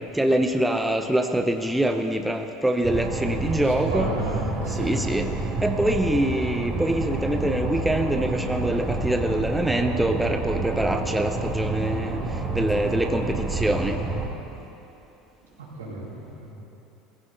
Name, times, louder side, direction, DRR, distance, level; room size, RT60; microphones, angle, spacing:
voice 1, 0.0-4.1 4.7-5.3 5.6-14.0, right 1 dB, 5° right, 5 dB, 0.9 m, -24 dB
sound 1, 2.8-14.3, right 2 dB, 25° right, 2.9 m, -29 dB
voice 2, 3.6-5.0 15.7-16.5, right 2 dB, 85° right, -7 dB, 4.4 m, -32 dB
18.0 x 15.5 x 4.0 m, 3.0 s
hypercardioid pair, 80°, 0 cm